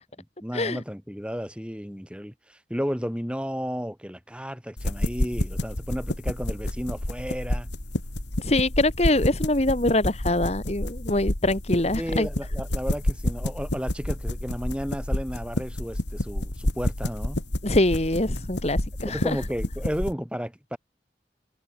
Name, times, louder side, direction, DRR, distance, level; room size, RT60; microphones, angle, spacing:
voice 1, 0.4-7.7 12.0-17.4 19.1-20.8, equal, 5° right, 7.4 m, -33 dB
sound 1, 4.8-20.1, left 1 dB, 80° left, 2.5 m, -29 dB
voice 2, 8.4-12.3 17.6-19.4, left 1 dB, 35° left, 1.9 m, -24 dB
head